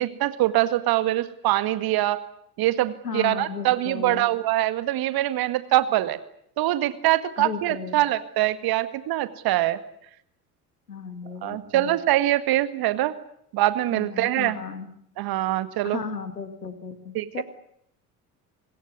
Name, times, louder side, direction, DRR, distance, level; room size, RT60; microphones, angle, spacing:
voice 1, 0.0-2.2 2.6-6.2 6.6-9.8 11.4-13.1 13.5-14.6 15.2-16.0 17.2-17.4, right 15 dB, 50° right, 13 dB, 1.9 m, -23 dB
voice 2, 3.0-4.3 7.4-8.0 10.9-12.0 13.9-14.9 15.8-17.4, left 6 dB, 85° left, 11 dB, 2.2 m, -35 dB
25.5 x 21.0 x 9.5 m, 0.71 s
figure-of-eight pair, 55°, 47 cm